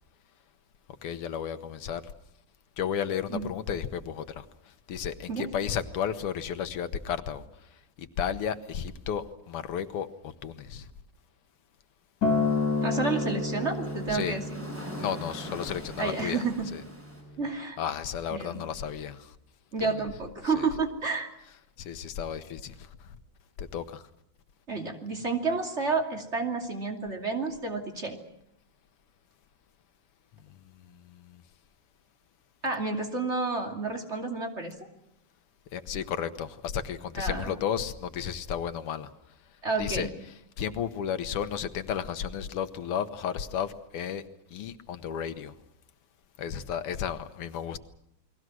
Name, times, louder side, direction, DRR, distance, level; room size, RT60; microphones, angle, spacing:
voice 1, 1.0-2.0 2.8-4.5 4.9-7.4 8.0-10.9 14.1-14.4 15.0-16.4 16.7-16.8 17.8-19.3 19.8-20.0 20.4-20.7 21.8-23.1 23.6-24.0 31.3-31.4 35.7-39.1 39.8-40.1 40.6-44.2 44.5-45.5 46.4-47.8, left 8 dB, 80° left, 2.1 m, -33 dB
Acoustic guitar, 12.2-16.5 17.3-17.4, left 3 dB, 45° left, 4.1 m, -30 dB
sound 1, 12.2-17.2, left 1 dB, 5° right, 8.0 m, -43 dB
voice 2, 12.8-14.5 16.0-16.7 17.4-17.8 18.3-18.6 19.7-21.3 24.7-28.2 32.6-34.7 37.1-37.5 39.6-40.1, right 4 dB, 30° right, 3.0 m, -30 dB
29.5 x 21.0 x 6.2 m
omnidirectional pair, 2.4 m